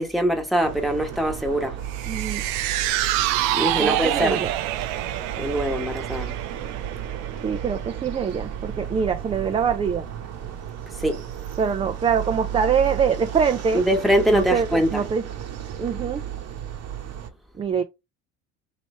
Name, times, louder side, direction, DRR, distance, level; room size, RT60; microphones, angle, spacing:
voice 1, 0.0-1.8 3.5-4.4 5.4-6.3 11.0-11.2 13.7-15.0, equal, ahead, 1.2 m, -23 dB
sound 1, 0.6-17.3, right 10 dB, 50° right, 0.9 m, -33 dB
sound 2, 1.9-8.3 8.7-8.8, right 14 dB, 80° right, 0.5 m, -27 dB
voice 2, 2.1-2.4 3.8-4.5 7.4-10.0 11.6-13.8 14.3-14.7 14.9-15.2 15.8-16.2 17.6-17.8, right 6 dB, 20° right, 0.3 m, -24 dB
3.1 x 2.9 x 4.2 m
supercardioid pair, 100°, 33 cm